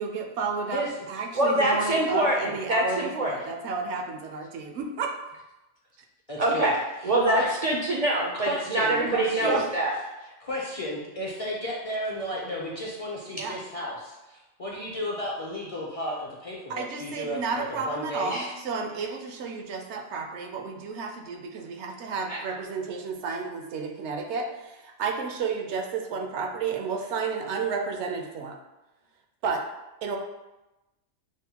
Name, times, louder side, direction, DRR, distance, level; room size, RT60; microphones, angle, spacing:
voice 1, 0.0-5.1 9.4-9.6 13.3-13.6 16.7-28.6 29.4-29.6 30.0-30.2, right 5 dB, 75° right, 3 dB, 0.8 m, -32 dB
voice 2, 1.4-3.3 6.4-6.7 7.0-10.0 18.3-18.5 22.3-22.4, right 1 dB, 55° right, -2 dB, 0.4 m, -25 dB
voice 3, 6.3-6.7 7.3-7.5 8.5-9.6 10.4-18.3, equal, 40° left, -4 dB, 0.5 m, -33 dB
6.0 x 2.1 x 2.8 m, 1.0 s
omnidirectional pair, 1.2 m